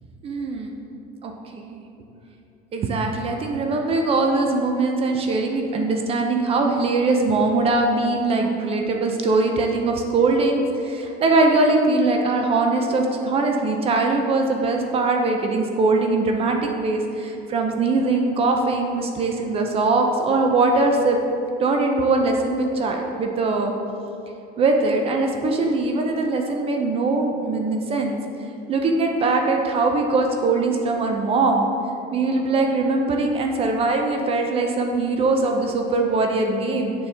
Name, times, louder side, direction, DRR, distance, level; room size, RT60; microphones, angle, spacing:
voice 1, 0.2-0.8 1.2-1.8 2.7-21.2 21.6-23.7 24.6-28.2 28.7-31.7 32.1-36.9, right 3 dB, 30° right, 3 dB, 0.5 m, -21 dB
6.9 x 5.3 x 3.4 m, 2.8 s
cardioid pair, 150°, 20 cm